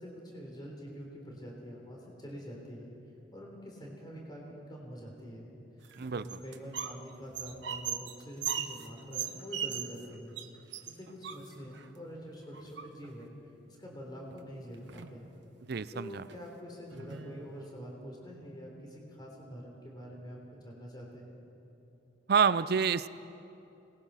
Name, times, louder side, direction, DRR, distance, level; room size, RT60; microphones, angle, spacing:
voice 1, 0.0-2.9 3.3-5.5 6.1-10.4 10.9-13.3 13.7-15.3 15.9-21.4, equal, 25° left, -1 dB, 3.7 m, -46 dB
sound 1, 5.8-7.0 7.3-10.1 10.4-10.5 10.7-11.9 12.5-13.2 14.3-14.4 14.7-15.2 15.7-15.9 16.3-16.4 16.9-17.7, right 9 dB, 85° right, 1.1 m, -39 dB
voice 2, 15.7-16.2 22.3-23.1, right 6 dB, 60° right, 15 dB, 0.5 m, -27 dB
25.5 x 20.0 x 5.7 m, 2.9 s
head